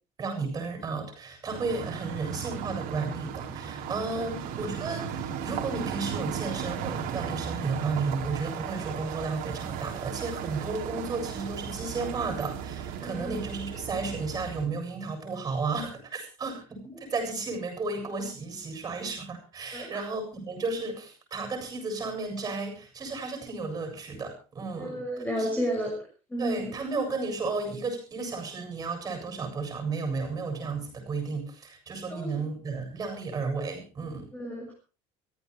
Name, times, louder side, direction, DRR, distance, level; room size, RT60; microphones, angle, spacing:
voice 1, 0.2-25.0 25.4-25.5 26.4-34.3, right 4 dB, 25° right, 6 dB, 7.7 m, -33 dB
sound 1, 1.5-14.7, right 8 dB, 65° right, 4.3 m, -36 dB
voice 2, 13.0-13.4 19.7-20.0 24.8-25.9 26.3-26.7 32.1-32.5 34.3-34.7, equal, 10° left, 0 dB, 6.4 m, -32 dB
23.5 x 15.5 x 3.4 m, 0.35 s
cardioid pair, 155°, 16 cm